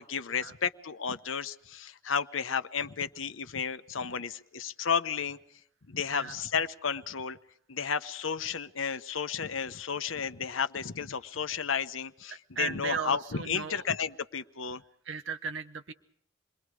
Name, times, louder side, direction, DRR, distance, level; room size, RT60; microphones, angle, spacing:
voice 1, 0.0-5.4 5.9-7.4 7.7-14.8, left 6 dB, 85° left, 12 dB, 1.0 m, -32 dB
voice 2, 12.3-13.8 15.1-15.9, right 6 dB, 70° right, 7 dB, 0.9 m, -36 dB
28.5 x 22.0 x 4.8 m, 0.66 s
head